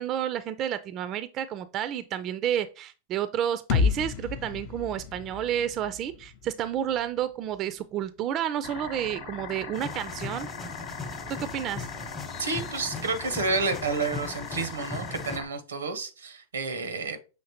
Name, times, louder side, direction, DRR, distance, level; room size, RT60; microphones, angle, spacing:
voice 1, 0.0-10.5 11.4-11.9, right 10 dB, 40° right, 0.3 m, -30 dB
sound 1, 3.7-7.6, left 5 dB, 55° left, 0.5 m, -31 dB
sound 2, 8.6-15.4, left 5 dB, 70° left, 0.9 m, -40 dB
sound 3, 9.7-15.4, left 4 dB, 25° left, 0.8 m, -39 dB
voice 2, 12.4-17.2, right 4 dB, 90° right, 0.7 m, -30 dB
5.8 x 3.0 x 2.9 m
hypercardioid pair, 105°, 0 cm